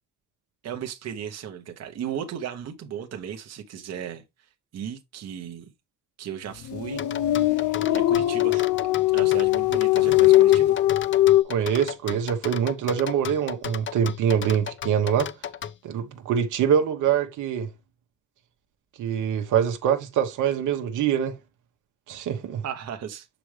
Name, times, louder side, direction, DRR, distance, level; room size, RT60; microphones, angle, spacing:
voice 1, 0.6-4.2 4.7-5.7 6.2-7.0 7.3-7.5 7.9-8.6 9.1-10.8 22.6-23.3, right 9 dB, 60° right, 1.0 m, -35 dB
sound 1, 6.6-11.4, left 15 dB, 80° left, 0.7 m, -20 dB
sound 2, 7.0-15.7, left 8 dB, 40° left, 0.6 m, -34 dB
voice 2, 11.4-15.3 15.8-17.7 19.0-21.4 22.1-22.6, right 8 dB, 80° right, 1.1 m, -24 dB
6.0 x 5.0 x 3.2 m
cardioid pair, 90°, 30 cm